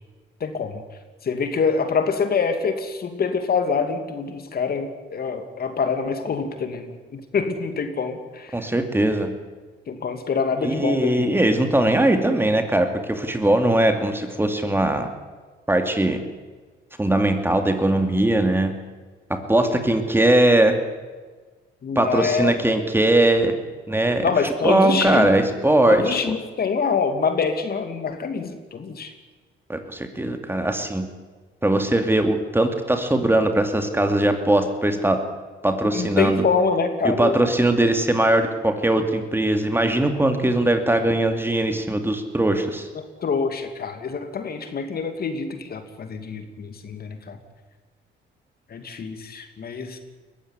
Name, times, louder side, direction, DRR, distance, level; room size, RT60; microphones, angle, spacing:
voice 1, 0.4-0.8 1.2-8.7 9.9-11.3 21.8-22.5 24.2-25.3 25.9-29.1 35.9-37.4 43.2-47.4 48.7-50.0, left 5 dB, 50° left, 7 dB, 2.6 m, -25 dB
voice 2, 8.5-9.3 10.6-15.1 15.7-16.2 17.0-18.7 19.3-20.8 21.9-23.5 23.9-24.3 24.6-26.1 29.7-31.1 31.6-35.2 35.6-36.4 37.0-42.9, right 1 dB, 10° right, 6 dB, 2.7 m, -20 dB
21.5 x 15.0 x 9.7 m, 1.4 s
cardioid pair, 90°, 20 cm